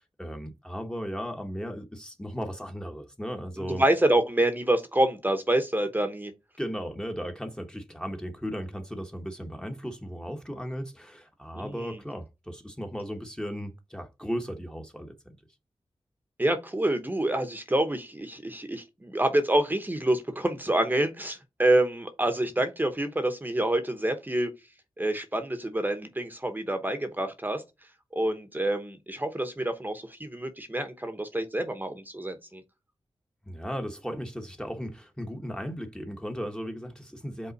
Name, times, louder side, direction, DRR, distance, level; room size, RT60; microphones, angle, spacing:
voice 1, 0.0-3.8 6.6-15.4 33.4-37.5, equal, 10° left, 1.1 m, -36 dB
voice 2, 3.6-6.3 11.5-11.9 16.4-24.5 25.0-27.6 28.1-32.6, right 1 dB, 20° right, 0.9 m, -27 dB
5.4 x 3.7 x 5.2 m
wide cardioid pair, 80°, 10 cm